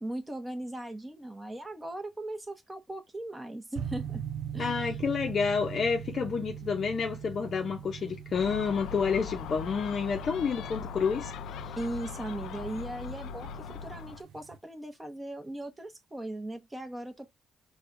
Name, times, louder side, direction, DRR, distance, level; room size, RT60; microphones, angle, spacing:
voice 1, 0.0-4.2 4.5-4.8 11.8-17.3, right 1 dB, 15° right, 0.9 m, -38 dB
sound 1, 3.8-14.6, right 8 dB, 80° right, 0.6 m, -42 dB
voice 2, 4.6-11.3, left 5 dB, 50° left, 0.6 m, -29 dB
Gull seagull, 8.3-14.2, left 6 dB, 85° left, 0.3 m, -40 dB
4.4 x 2.3 x 2.5 m
cardioid pair, 90°, 0 cm